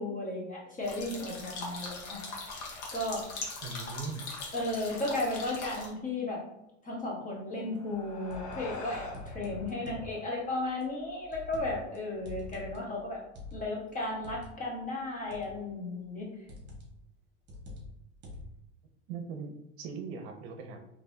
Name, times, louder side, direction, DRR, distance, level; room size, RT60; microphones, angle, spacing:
voice 1, 0.0-2.5 2.9-3.2 4.5-6.4 6.8-13.2 13.5-16.3, left 2 dB, 20° left, -3 dB, 1.3 m, -35 dB
sound 1, 0.8-5.9, left 3 dB, 70° left, 1.3 m, -41 dB
voice 2, 3.6-4.3 19.1-20.8, right 5 dB, 60° right, 5 dB, 0.7 m, -40 dB
sound 2, 7.5-12.1, left 3 dB, 55° left, 1.0 m, -47 dB
sound 3, 8.1-10.1 10.8-12.0 12.2-14.5 15.3-15.7 16.5-17.0 17.5-18.6, left 2 dB, 30° right, 1.3 m, -45 dB
3.8 x 3.0 x 2.7 m, 0.85 s
hypercardioid pair, 110°, 37 cm